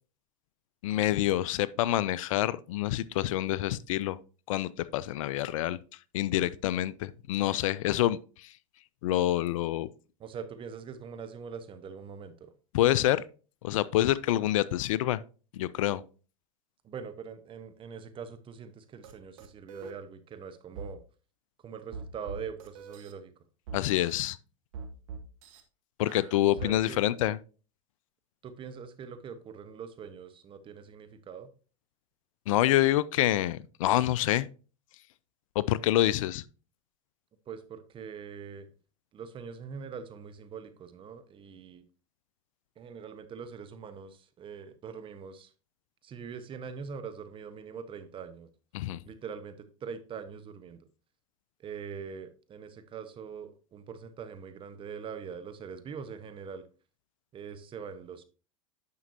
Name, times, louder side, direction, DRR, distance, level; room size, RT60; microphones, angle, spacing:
voice 1, 0.8-4.2 4.5-5.8 6.1-8.5 9.0-9.9 12.7-13.2 13.6-15.2 15.5-16.0 23.7-24.4 26.0-27.4 32.5-34.5 35.6-36.4 48.7-49.0, left 14 dB, 70° left, 0.4 m, -27 dB
voice 2, 10.2-12.5 16.8-21.0 21.6-23.3 26.4-27.0 28.4-31.5 37.5-38.7 39.1-41.8 42.8-45.5 46.0-48.5 49.0-50.9 51.6-56.7 57.3-58.2, right 6 dB, 30° right, 1.0 m, -43 dB
sound 1, 19.0-19.1 19.4-19.9 20.8-20.9 21.9-23.1 23.7-24.2 24.7-25.6 26.1-26.7, right 5 dB, 70° right, 1.3 m, -42 dB
9.5 x 6.0 x 2.7 m
hypercardioid pair, 100°, 18 cm